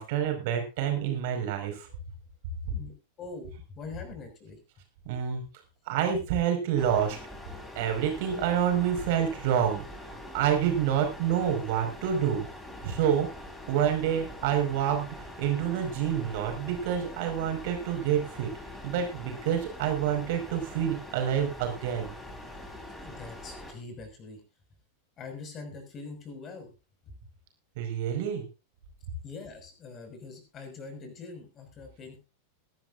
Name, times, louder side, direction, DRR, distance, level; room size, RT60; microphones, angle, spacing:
voice 1, 0.0-1.9 5.1-5.4 5.9-7.2 7.8-12.5 12.8-13.3 13.7-18.5 18.8-22.1 27.8-28.5, right 9 dB, 50° right, 5 dB, 5.2 m, -28 dB
voice 2, 3.2-4.6 23.0-24.4 25.2-26.7 29.2-32.2, left 4 dB, 30° left, 5 dB, 5.6 m, -43 dB
sound 1, 6.8-23.7, left 1 dB, 10° left, 3.9 m, -44 dB
22.0 x 12.0 x 2.6 m, 0.30 s
figure-of-eight pair, 90°, 0 cm